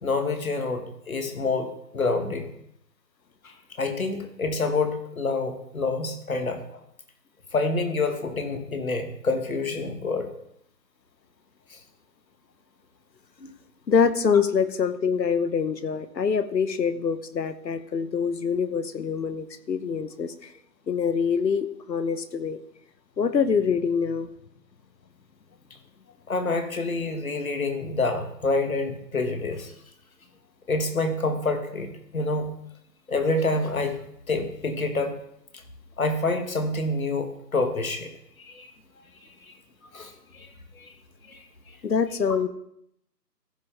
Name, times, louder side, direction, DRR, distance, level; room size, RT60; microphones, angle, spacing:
voice 1, 0.0-1.7 1.9-2.5 3.8-6.6 7.5-10.3 11.7-11.8 26.3-29.7 30.7-32.5 33.1-34.0 34.3-35.1 36.0-38.1 38.4-38.7 39.5-39.6 39.9-40.5 40.8-40.9 41.3-41.4 42.2-42.3, left 3 dB, 55° left, 7 dB, 1.4 m, -27 dB
voice 2, 13.9-20.3 20.9-22.6 23.2-24.3 41.8-42.5, left 6 dB, 85° left, 13 dB, 1.0 m, -25 dB
15.0 x 5.7 x 3.4 m, 0.74 s
hypercardioid pair, 180°, 50 cm